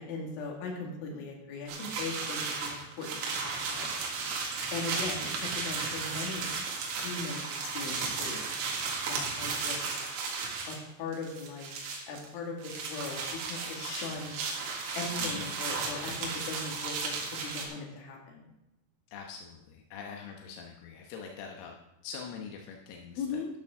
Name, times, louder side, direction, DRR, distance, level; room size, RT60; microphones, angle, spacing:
voice 1, 0.0-3.9 4.7-6.5 6.9-7.4 7.7-8.4 9.0-9.9 10.7-11.7 12.1-14.4 15.0-18.5 23.2-23.5, left 4 dB, 70° left, -1 dB, 4.4 m, -39 dB
sound 1, 1.7-10.8 11.1-12.3 12.6-17.6, right 4 dB, 80° right, 4.5 m, -35 dB
voice 2, 15.2-15.5 19.1-21.8 22.0-23.4, left 6 dB, 90° left, 0 dB, 3.8 m, -44 dB
12.0 x 11.5 x 3.7 m, 0.86 s
omnidirectional pair, 5.8 m